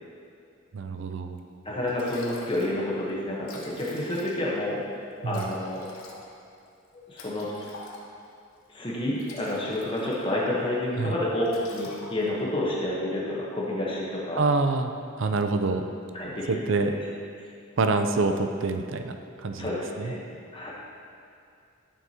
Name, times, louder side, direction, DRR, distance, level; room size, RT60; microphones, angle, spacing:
voice 1, 0.7-1.4 5.2-5.5 11.0-11.2 14.4-14.9 15.2-15.9 16.5-17.0 17.8-20.1, right 3 dB, 60° right, 6 dB, 0.5 m, -26 dB
Liquid, 1.5-1.6 1.9-2.8 3.1-3.2 3.4-4.6 5.3-8.3 9.0-10.5 10.8-11.1 11.4-12.5, left 2 dB, 90° left, 1.0 m, -47 dB
voice 2, 1.6-4.9 5.2-5.9 6.9-7.5 8.7-11.4 11.7-14.4 16.1-16.6 16.9-17.0 19.6-20.7, left 1 dB, 25° left, -5 dB, 1.0 m, -29 dB
11.0 x 6.1 x 2.9 m, 2.5 s
head